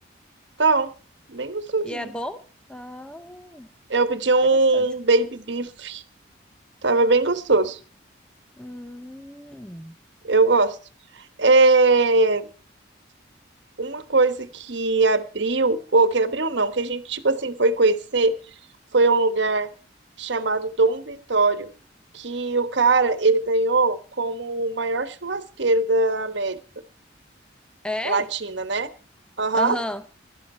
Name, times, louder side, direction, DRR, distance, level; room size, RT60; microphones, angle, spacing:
voice 1, 0.6-0.9 1.3-2.1 3.9-6.0 6.8-7.8 10.2-10.8 11.4-12.5 13.8-18.3 18.9-19.7 20.2-21.7 22.1-26.6 28.0-28.9 29.4-29.8, right 3 dB, 70° right, 13 dB, 1.2 m, -21 dB
voice 2, 1.8-2.4 2.7-3.7 4.7-4.9 8.6-10.0 27.8-28.3 29.5-30.0, left 1 dB, 5° left, 11 dB, 0.6 m, -33 dB
16.5 x 12.0 x 4.3 m, 0.36 s
head